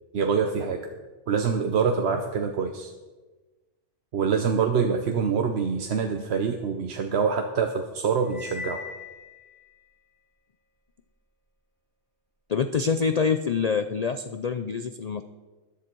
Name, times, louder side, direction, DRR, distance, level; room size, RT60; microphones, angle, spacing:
voice 1, 0.1-0.9 1.3-2.9 4.1-8.8, right 6 dB, 60° right, 5 dB, 1.0 m, -25 dB
Cymbal, 8.3-9.7, left 4 dB, 15° left, 3.9 m, -39 dB
voice 2, 12.5-15.2, left 5 dB, 65° left, 9 dB, 0.4 m, -26 dB
13.5 x 10.5 x 4.5 m, 1.2 s
omnidirectional pair, 1.3 m